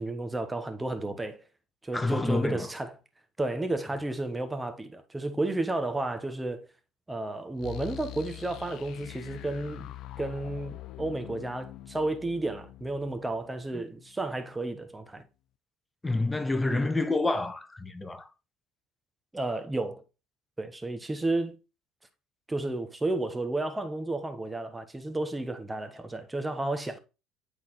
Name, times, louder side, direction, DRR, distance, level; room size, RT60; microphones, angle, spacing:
voice 1, 0.0-1.5 1.8-2.9 3.4-6.7 7.1-15.3 19.3-20.0 20.6-21.6 22.5-27.0, right 2 dB, 15° right, 1.2 m, -32 dB
voice 2, 1.9-2.7 13.7-13.8 16.0-18.3, left 2 dB, 15° left, 0.8 m, -28 dB
sound 1, 7.6-14.4, left 14 dB, 60° left, 0.5 m, -44 dB
8.6 x 3.9 x 3.1 m
supercardioid pair, 85°, 0 cm